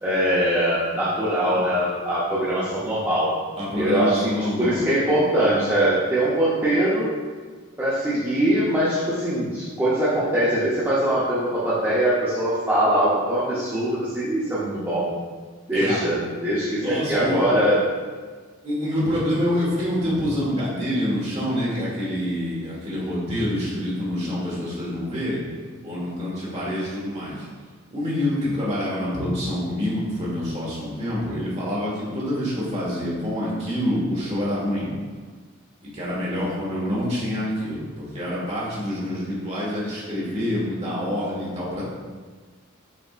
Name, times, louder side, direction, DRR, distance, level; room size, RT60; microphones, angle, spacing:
voice 1, 0.0-3.3 3.8-7.1 7.8-15.1 15.7-17.8, right 1 dB, 10° right, -11 dB, 0.7 m, -22 dB
voice 2, 3.6-4.8 15.7-16.0 16.8-17.4 18.6-25.5 25.8-27.4 27.9-34.9 35.8-41.9, left 1 dB, 30° right, -7 dB, 1.4 m, -26 dB
6.0 x 3.5 x 2.4 m, 1.5 s
head